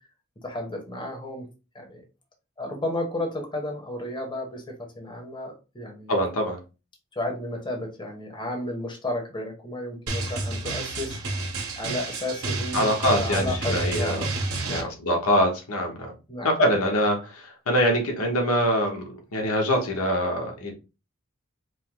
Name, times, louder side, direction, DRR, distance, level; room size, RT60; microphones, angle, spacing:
voice 1, 0.4-1.5 1.7-2.0 2.6-4.6 4.9-6.2 7.1-11.2 11.8-14.3 14.6-14.9 16.3-16.5, left 1 dB, 20° left, 1.1 m, -32 dB
voice 2, 6.1-6.6 12.7-14.3 14.7-16.1 16.4-20.7, equal, 80° left, 1.1 m, -24 dB
Drum, 10.1-14.8, right 2 dB, 75° right, 1.5 m, -30 dB
5.2 x 2.1 x 3.7 m
head